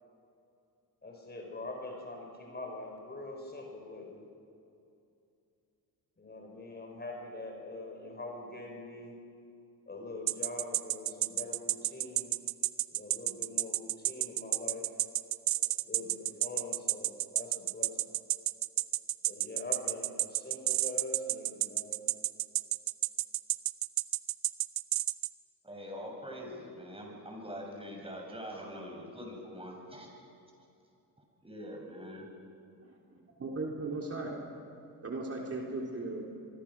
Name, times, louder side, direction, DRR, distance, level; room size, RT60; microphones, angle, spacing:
voice 1, 1.0-4.3 6.2-9.2 9.9-12.3 12.9-14.9 15.8-18.0 19.3-22.1, left 2 dB, 25° left, 1 dB, 5.0 m, -43 dB
sound 1, 10.3-25.3, right 15 dB, 80° right, 0.8 m, -30 dB
voice 2, 25.6-30.1 31.4-32.3, equal, 15° right, 0 dB, 7.2 m, -43 dB
voice 3, 32.8-34.3 35.0-36.2, right 2 dB, 40° right, -1 dB, 3.7 m, -37 dB
24.5 x 24.0 x 6.2 m, 2.6 s
cardioid pair, 105°, 38 cm